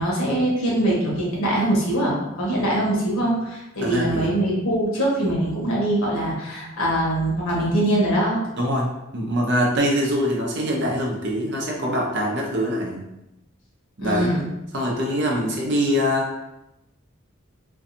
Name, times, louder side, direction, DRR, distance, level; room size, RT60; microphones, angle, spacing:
voice 1, 0.0-8.4 14.0-14.4, right 1 dB, 90° left, -4 dB, 1.0 m, -22 dB
voice 2, 3.8-4.4 8.6-8.9 9.1-13.0 14.0-14.4 14.7-16.3, equal, 55° right, -2 dB, 0.6 m, -23 dB
2.6 x 2.3 x 2.6 m, 0.90 s
head